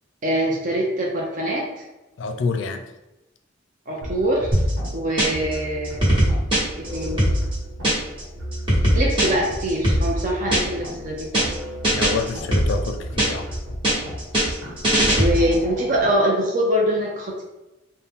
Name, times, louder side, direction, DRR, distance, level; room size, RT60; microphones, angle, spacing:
voice 1, 0.2-1.8 3.9-4.5 4.9-6.0 6.9-7.2 8.9-11.5 15.1-17.4, equal, 40° right, -2 dB, 0.5 m, -23 dB
voice 2, 2.2-2.8 11.9-13.5, left 4 dB, 80° left, 7 dB, 0.4 m, -27 dB
sound 1, 4.0-16.1, equal, 85° right, 1.0 m, -35 dB
sound 2, 4.5-5.5 5.8-8.2 8.5-10.9 11.2-11.5 11.8-13.5 13.8-15.6, equal, 25° right, 1.2 m, -20 dB
4.0 x 2.1 x 3.5 m, 1.0 s
head